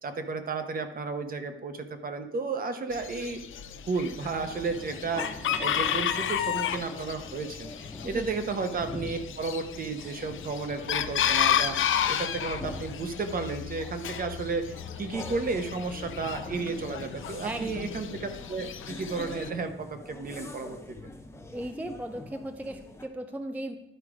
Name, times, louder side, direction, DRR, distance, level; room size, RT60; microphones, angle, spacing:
voice 1, 0.0-3.4 3.8-21.1, right 4 dB, 45° right, 7 dB, 0.9 m, -33 dB
Chicken rooster, 2.9-19.5, left 9 dB, 70° left, 0.6 m, -32 dB
sound 1, 4.0-23.1, left 2 dB, 15° left, 0.9 m, -45 dB
voice 2, 17.4-17.9 21.5-23.8, right 1 dB, 10° right, 8 dB, 0.4 m, -36 dB
11.5 x 4.9 x 4.8 m, 0.85 s
wide cardioid pair, 160°, 21 cm